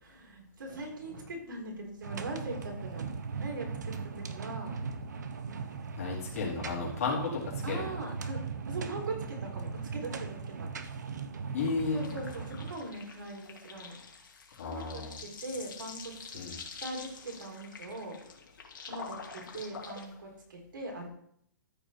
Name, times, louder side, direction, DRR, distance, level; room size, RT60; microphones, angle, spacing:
voice 1, 0.0-3.1 3.4-4.8 6.0-6.2 7.6-8.4 8.7-10.7 11.9-14.0 14.6-16.4 16.8-18.2 18.8-21.1, right 2 dB, 85° right, 0 dB, 3.9 m, -41 dB
sound 1, 2.0-12.7, right 5 dB, 60° right, 1.0 m, -38 dB
voice 2, 6.0-7.9 11.5-12.0 14.6-15.2 16.3-16.5, left 4 dB, 45° left, -5 dB, 3.9 m, -33 dB
sound 2, 11.6-20.1, left 5 dB, 80° left, 2.4 m, -47 dB
13.5 x 5.4 x 4.5 m, 0.71 s
hypercardioid pair, 180°, 11 cm